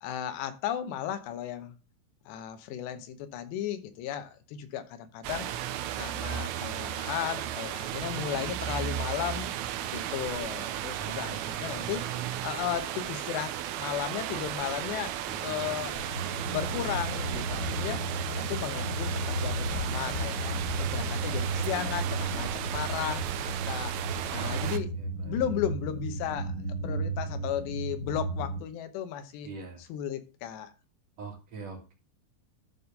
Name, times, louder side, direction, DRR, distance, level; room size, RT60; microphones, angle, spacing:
voice 1, 0.0-1.7 2.3-5.5 5.9-9.5 9.9-12.0 12.4-15.2 15.4-16.0 16.2-18.0 18.4-23.4 23.6-24.0 24.3-24.9 25.3-26.6 26.8-29.5 29.9-30.7, left 10 dB, 80° left, 3.1 m, -35 dB
sound 1, 5.2-24.8, right 11 dB, 80° right, 2.3 m, -35 dB
voice 2, 10.9-12.3 15.3-15.9 24.3-25.5 29.4-29.8 31.2-31.9, right 4 dB, 50° right, 2.4 m, -44 dB
sound 2, 16.0-28.6, right 1 dB, 35° left, 2.8 m, -34 dB
11.5 x 4.2 x 5.3 m
omnidirectional pair, 5.0 m